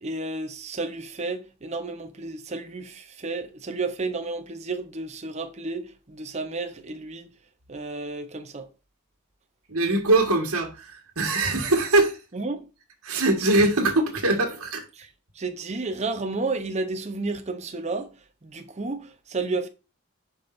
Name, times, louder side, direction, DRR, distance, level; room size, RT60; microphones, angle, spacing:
voice 1, 0.0-7.3 7.7-8.7 12.3-12.6 15.0-15.1 15.4-18.1 18.4-19.7, right 3 dB, 30° right, 0.8 m, -32 dB
voice 2, 9.7-12.2 13.0-14.8, right 2 dB, 80° right, 1.6 m, -22 dB
7.3 x 5.3 x 2.6 m
head